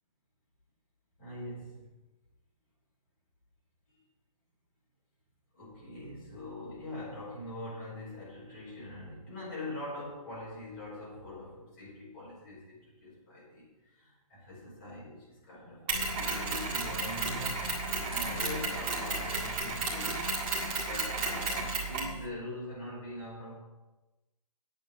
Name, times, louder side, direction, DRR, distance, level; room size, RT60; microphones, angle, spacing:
voice 1, 1.2-1.9 5.5-17.7 18.1-20.3 20.9-23.6, left 1 dB, 25° left, -7 dB, 5.2 m, -43 dB
Mechanisms, 15.9-22.2, right 3 dB, 15° right, 2.0 m, -33 dB
9.1 x 7.2 x 8.8 m, 1.1 s
hypercardioid pair, 180°, 18 cm